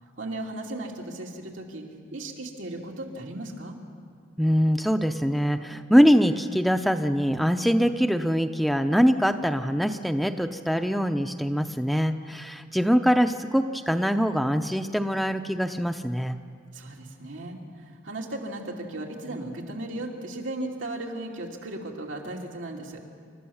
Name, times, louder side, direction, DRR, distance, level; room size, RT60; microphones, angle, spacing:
voice 1, 0.2-1.8 2.1-3.8 16.7-23.0, right 1 dB, 90° right, -1 dB, 2.8 m, -36 dB
voice 2, 4.4-16.4, equal, ahead, 7 dB, 0.5 m, -23 dB
29.0 x 13.5 x 7.1 m, 2.2 s
head